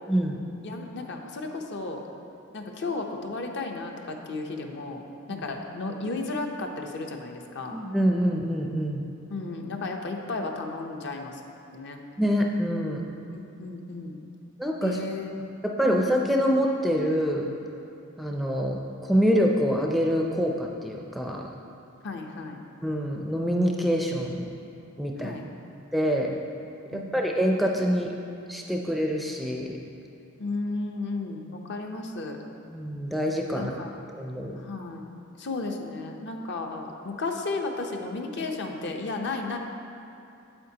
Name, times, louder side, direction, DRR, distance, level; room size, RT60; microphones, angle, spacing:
voice 1, 0.6-2.0 2.5-5.0 5.3-7.8 9.3-11.4 11.7-12.0 13.3-14.2 14.8-15.3 15.8-16.1 22.0-22.6 25.2-25.5 26.9-27.2 30.4-32.4 33.5-33.9 34.6-35.1 35.4-39.6, left 3 dB, 60° left, 3 dB, 0.7 m, -34 dB
voice 2, 7.7-9.0 12.2-13.1 14.6-15.0 15.6-17.5 18.2-21.5 22.8-24.5 25.0-25.4 25.9-26.4 26.9-28.1 28.5-29.8 32.7-33.8 34.1-34.5, equal, ahead, 0 dB, 0.4 m, -26 dB
8.8 x 7.9 x 2.8 m, 2.6 s
head